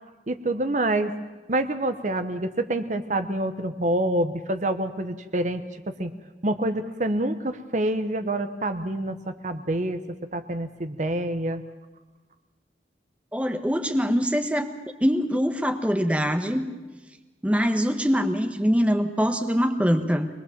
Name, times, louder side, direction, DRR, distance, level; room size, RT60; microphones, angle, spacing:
voice 1, 0.3-1.1 1.5-5.6 6.0-6.1 6.4-10.0 10.3-11.6, right 1 dB, 45° right, 9 dB, 0.9 m, -27 dB
voice 2, 13.3-14.7 15.0-16.7 17.4-20.3, equal, 5° right, 7 dB, 1.1 m, -23 dB
24.0 x 20.5 x 7.3 m, 1.2 s
head